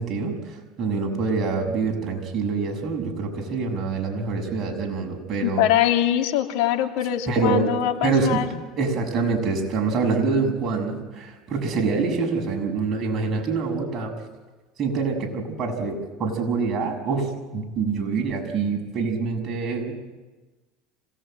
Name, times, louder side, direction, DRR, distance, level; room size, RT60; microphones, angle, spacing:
voice 1, 0.0-5.6 7.3-7.8 8.0-8.5 8.8-14.1 14.8-19.9, right 4 dB, 40° right, 2 dB, 6.7 m, -25 dB
voice 2, 5.4-8.5, left 12 dB, 70° left, 3 dB, 2.9 m, -23 dB
26.0 x 19.0 x 9.0 m, 1.2 s
supercardioid pair, 110°, 0 cm